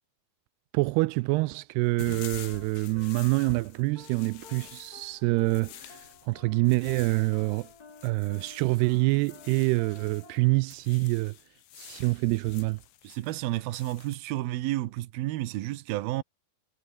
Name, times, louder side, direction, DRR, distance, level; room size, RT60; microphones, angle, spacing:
voice 1, 0.7-7.7 8.0-11.4 11.8-12.8, right 23 dB, 85° right, 2.3 m, -26 dB
sound 1, 1.9-10.4 10.6-14.3, left 13 dB, 70° left, 3.4 m, -48 dB
sound 2, 2.1-10.5, left 4 dB, 30° left, 2.2 m, -53 dB
voice 2, 13.0-16.2, right 16 dB, 70° right, 2.5 m, -31 dB
omnidirectional pair, 5.2 m